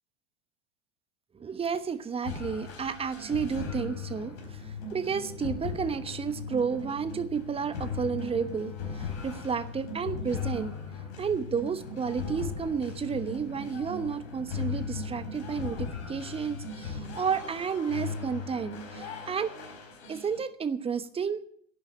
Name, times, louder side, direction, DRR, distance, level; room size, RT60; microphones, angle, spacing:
voice 1, 1.3-10.7 11.2-19.5 20.1-21.4, right 6 dB, 15° right, 12 dB, 1.0 m, -32 dB
sound 1, 2.2-20.4, left 5 dB, 60° left, 4.2 m, -38 dB
11.5 x 8.6 x 9.8 m, 0.65 s
figure-of-eight pair, 90°, 36 cm